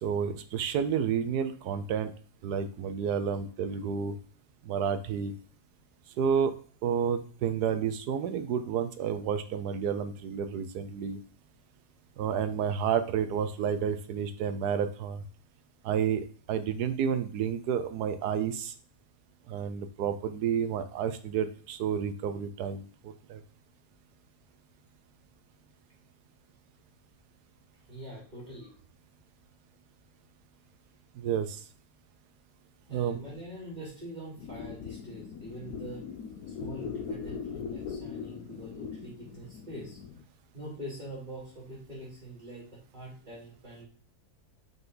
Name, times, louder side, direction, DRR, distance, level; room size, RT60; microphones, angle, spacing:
voice 1, 0.0-2.1 2.4-4.2 4.6-5.3 6.2-6.5 6.8-11.2 12.2-15.2 15.8-18.7 19.5-23.4 31.2-31.6 32.9-33.2, right 7 dB, 80° right, 10 dB, 1.2 m, -30 dB
voice 2, 27.7-28.7 32.9-36.0 36.6-40.0 40.5-43.9, right 1 dB, 25° right, -6 dB, 2.8 m, -44 dB
sound 1, 34.4-40.2, left 6 dB, 75° left, 1.2 m, -40 dB
5.7 x 5.6 x 3.9 m, 0.43 s
omnidirectional pair, 1.7 m